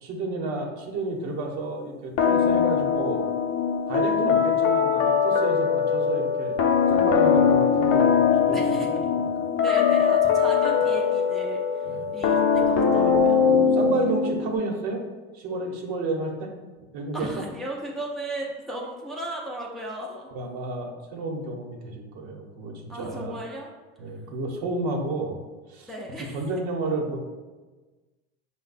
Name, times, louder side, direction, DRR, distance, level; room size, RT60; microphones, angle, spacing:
voice 1, 0.0-3.2 3.9-6.5 6.9-9.3 11.8-12.1 13.4-15.0 15.3-16.5 16.9-17.3 20.3-23.4 24.0-25.4 25.7-25.9 26.3-27.2, right 2 dB, 60° right, 1 dB, 1.0 m, -31 dB
sound 1, 2.2-14.6, left 6 dB, 45° left, 0.6 m, -21 dB
voice 2, 8.5-8.9 9.6-13.5 17.1-20.3 22.9-23.7 25.9-26.4, right 1 dB, ahead, -3 dB, 0.4 m, -36 dB
5.1 x 2.2 x 4.0 m, 1.2 s
supercardioid pair, 120°, 33 cm